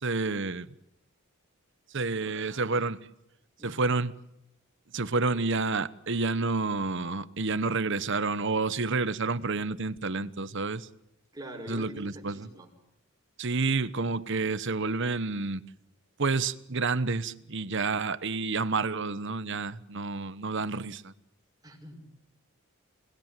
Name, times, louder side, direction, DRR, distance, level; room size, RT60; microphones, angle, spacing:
voice 1, 0.0-0.7 1.9-3.1 3.6-4.1 4.9-10.9 11.7-12.5 13.4-15.6 16.2-21.1, right 3 dB, 55° right, 1.0 m, -29 dB
voice 2, 11.3-12.7 21.6-22.3, right 1 dB, 20° right, 5.7 m, -44 dB
29.0 x 19.5 x 9.1 m
head